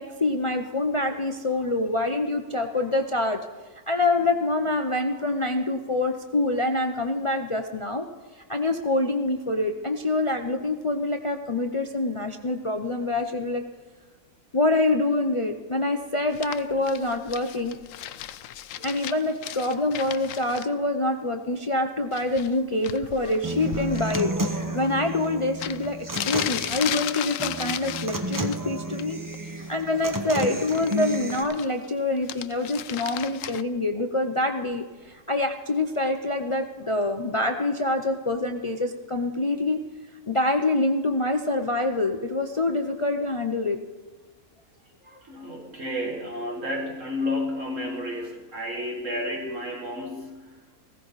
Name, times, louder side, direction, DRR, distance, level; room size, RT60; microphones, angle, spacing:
voice 1, 0.0-3.4 3.9-8.1 8.5-13.6 14.5-17.8 18.8-29.2 29.5-39.8 40.3-43.8 45.1-45.2, left 2 dB, 50° left, 5 dB, 0.3 m, -26 dB
sound 1, 16.3-20.6 22.1-22.6 22.8-24.2 25.2-25.3 25.6-28.6 28.9-29.4 29.6-31.9 32.2-33.6, left 11 dB, 70° left, 0.9 m, -35 dB
Human voice / Acoustic guitar, 23.4-31.4, right 1 dB, 15° right, 0.8 m, -31 dB
voice 2, 45.2-50.5, left 1 dB, 60° right, 0 dB, 2.4 m, -31 dB
16.0 x 15.0 x 4.0 m, 1.4 s
omnidirectional pair, 1.5 m